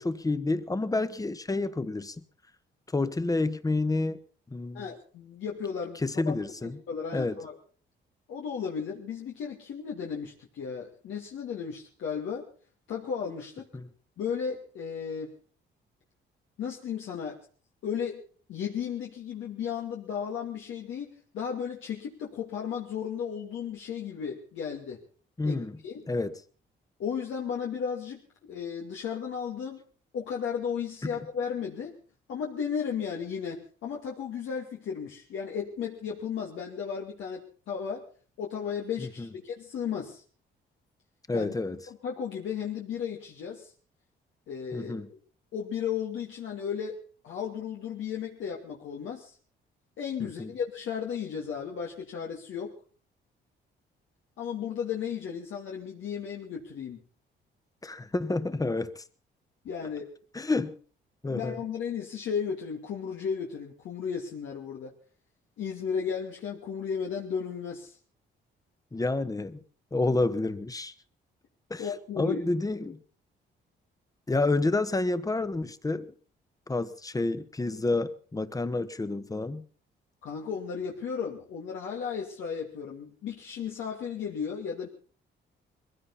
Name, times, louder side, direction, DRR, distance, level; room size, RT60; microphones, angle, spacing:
voice 1, 0.0-2.1 2.9-4.2 4.5-4.9 6.0-6.8 7.1-7.4 13.7-13.9 25.4-25.8 26.1-26.4 31.0-31.1 39.0-39.3 41.3-41.8 44.7-45.1 50.2-50.5 57.8-59.0 60.3-60.8 61.2-61.6 68.9-69.6 69.9-70.9 71.7-71.9 72.2-73.0 74.3-76.1 76.7-79.6, left 2 dB, 15° left, 1.4 m, -29 dB
voice 2, 4.7-6.3 6.6-7.6 8.3-12.5 12.9-13.7 14.2-15.3 16.6-17.4 17.8-18.2 18.5-25.0 25.4-26.1 27.0-28.2 28.5-29.8 30.1-32.0 32.3-38.0 38.4-40.2 41.3-41.5 41.9-43.7 44.5-45.0 45.5-47.0 47.2-49.4 50.0-52.7 54.4-57.0 59.6-60.1 61.3-64.9 65.6-68.0 71.8-72.4 80.2-84.9, left 7 dB, 75° left, 2.6 m, -34 dB
21.5 x 16.0 x 4.2 m
cardioid pair, 90°, 20 cm